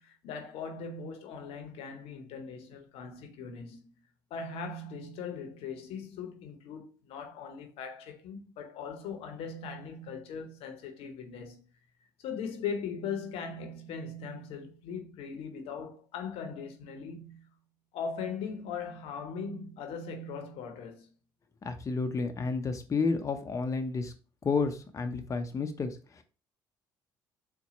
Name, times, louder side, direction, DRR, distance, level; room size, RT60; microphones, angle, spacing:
voice 1, 0.0-3.9 4.3-11.6 12.2-17.5 17.9-21.1, left 5 dB, 70° left, 0.7 m, -39 dB
voice 2, 21.6-24.1 24.4-26.2, left 4 dB, 30° left, 0.5 m, -31 dB
4.1 x 2.2 x 3.9 m
hypercardioid pair, 55°, 10 cm